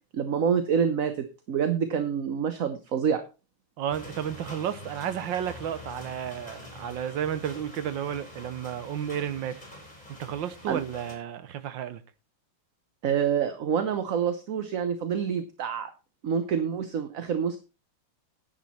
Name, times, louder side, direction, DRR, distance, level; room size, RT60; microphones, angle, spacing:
voice 1, 0.1-1.1 1.5-3.2 10.7-10.8 13.0-15.9 16.2-17.6, right 7 dB, 50° right, 1.2 m, -27 dB
voice 2, 3.8-9.6 10.2-12.0, right 9 dB, 80° right, 1.6 m, -32 dB
sound 1, 3.9-11.1, left 2 dB, 20° left, 4.8 m, -45 dB
10.5 x 9.3 x 4.3 m
omnidirectional pair, 2.1 m